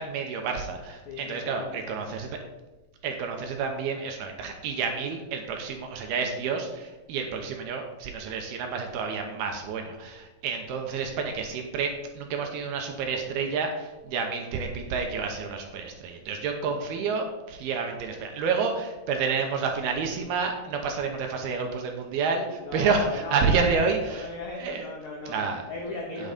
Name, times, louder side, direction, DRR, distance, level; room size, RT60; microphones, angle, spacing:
voice 1, 0.0-2.4 3.0-24.3 24.6-24.8 25.3-25.6 26.2-26.3, right 5 dB, 75° right, 3 dB, 2.5 m, -29 dB
voice 2, 1.0-2.0 16.6-17.0 22.6-25.4 25.7-26.3, left 3 dB, 90° left, 0 dB, 1.6 m, -37 dB
9.0 x 8.5 x 4.1 m, 1.1 s
omnidirectional pair, 5.2 m